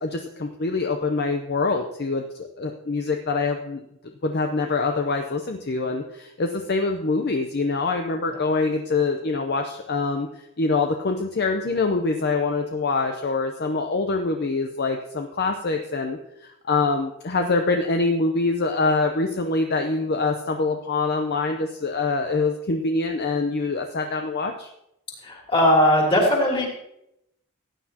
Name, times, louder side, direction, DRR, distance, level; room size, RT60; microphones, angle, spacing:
voice 1, 0.0-3.8 4.2-24.7, left 3 dB, 50° left, 4 dB, 0.7 m, -25 dB
voice 2, 25.2-26.7, left 1 dB, 25° left, -1 dB, 3.0 m, -19 dB
15.5 x 9.6 x 2.9 m, 0.81 s
head